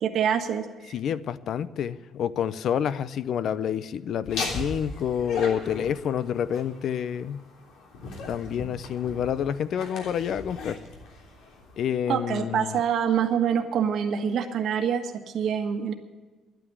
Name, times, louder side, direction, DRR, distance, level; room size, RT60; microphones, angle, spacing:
voice 1, 0.0-0.9 12.1-15.9, right 8 dB, 55° right, 5 dB, 1.4 m, -26 dB
voice 2, 0.9-7.4 8.3-10.8 11.8-12.8, left 8 dB, 55° left, 16 dB, 0.6 m, -28 dB
Laughter, 4.2-11.9, left 3 dB, 75° left, 3.3 m, -38 dB
11.5 x 9.0 x 9.4 m, 1.3 s
cardioid pair, 145°, 0 cm